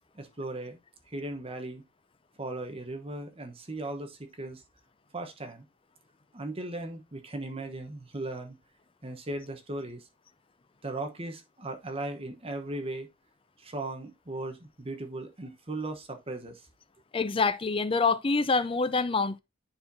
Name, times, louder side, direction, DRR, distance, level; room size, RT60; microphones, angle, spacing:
voice 1, 0.1-0.8 1.1-1.8 2.4-4.6 5.1-5.6 6.3-8.6 9.0-10.1 10.8-13.1 13.6-16.6, right 2 dB, 30° right, 1.0 m, -37 dB
voice 2, 17.1-19.4, left 4 dB, 25° left, 0.5 m, -26 dB
9.9 x 4.3 x 2.7 m
head